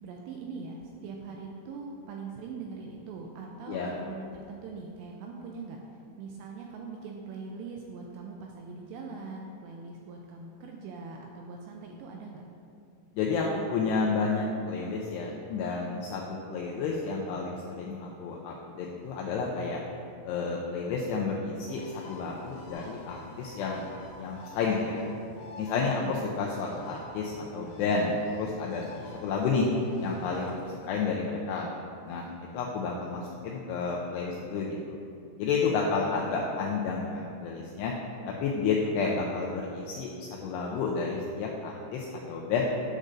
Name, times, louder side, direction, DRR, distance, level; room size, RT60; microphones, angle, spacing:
voice 1, 0.0-5.8 6.2-12.4 25.9-26.2 36.0-36.5 38.9-39.0, right 4 dB, 85° right, 0 dB, 2.5 m, -42 dB
voice 2, 13.1-19.8 20.3-23.8 24.2-25.0 25.6-28.8 29.2-29.7 30.0-30.5 30.9-31.7 32.1-35.0 35.4-37.9 38.3-40.1 40.4-42.6, left 4 dB, 90° left, -2 dB, 2.4 m, -30 dB
Bird, 21.6-30.9, left 2 dB, 70° left, 2.7 m, -48 dB
10.0 x 6.4 x 2.5 m, 2.5 s
omnidirectional pair, 5.4 m